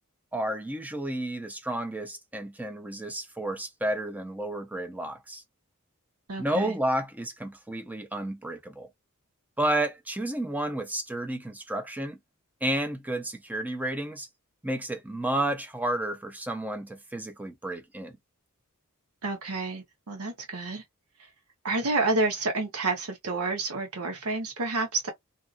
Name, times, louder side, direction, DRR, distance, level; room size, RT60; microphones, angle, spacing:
voice 1, 0.3-5.4 6.4-8.9 9.6-12.2 12.6-14.3 14.6-18.1, right 1 dB, 5° right, 0.5 m, -31 dB
voice 2, 6.3-6.8 19.2-20.8 21.2-21.3 21.6-25.1, right 3 dB, 90° right, 1.0 m, -29 dB
2.7 x 2.5 x 2.5 m
head